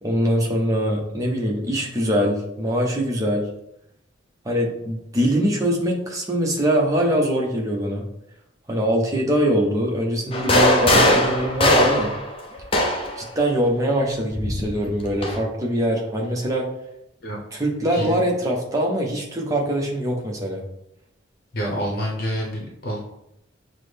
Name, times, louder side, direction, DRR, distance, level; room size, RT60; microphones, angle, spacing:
voice 1, 0.0-3.5 4.4-8.0 8.7-12.1 13.2-16.7 17.5-20.6, equal, 15° right, -1 dB, 0.7 m, -23 dB
sound 1, 10.3-13.2 14.3-15.4, left 1 dB, 30° left, 0.5 m, -19 dB
voice 2, 17.9-18.2 21.5-23.0, equal, 50° left, -2 dB, 0.8 m, -27 dB
5.9 x 2.1 x 3.3 m, 0.81 s
head